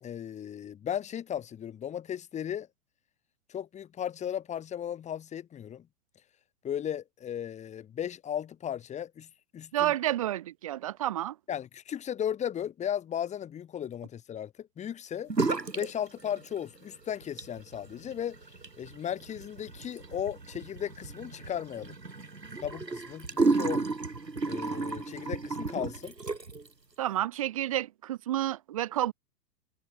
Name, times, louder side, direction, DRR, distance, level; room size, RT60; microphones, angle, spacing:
voice 1, 0.0-2.7 3.5-5.9 6.6-9.3 9.5-9.9 11.5-15.3 15.7-18.4 18.8-21.9 22.6-23.8 24.5-26.1, left 9 dB, 15° left, 1.5 m, -36 dB
voice 2, 9.7-11.3 27.0-29.1, right 13 dB, 25° right, 0.4 m, -30 dB
sound 1, 15.3-15.9 16.2-16.8 17.2-26.7, right 3 dB, 85° right, 1.9 m, -33 dB
figure-of-eight pair, 105°, 48 cm